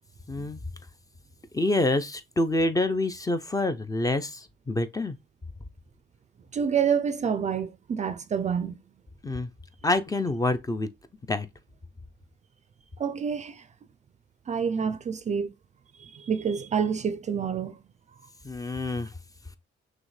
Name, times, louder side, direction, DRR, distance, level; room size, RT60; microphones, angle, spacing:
voice 1, 0.3-0.6 1.5-5.2 9.2-9.5 9.8-10.9 11.3-11.5 18.4-19.1, left 2 dB, 20° left, 0.5 m, -27 dB
voice 2, 6.5-8.8 13.0-13.6 14.5-15.5 16.0-17.8, right 7 dB, 35° right, 0.4 m, -28 dB
6.0 x 2.2 x 3.2 m
cardioid pair, 90°, 20 cm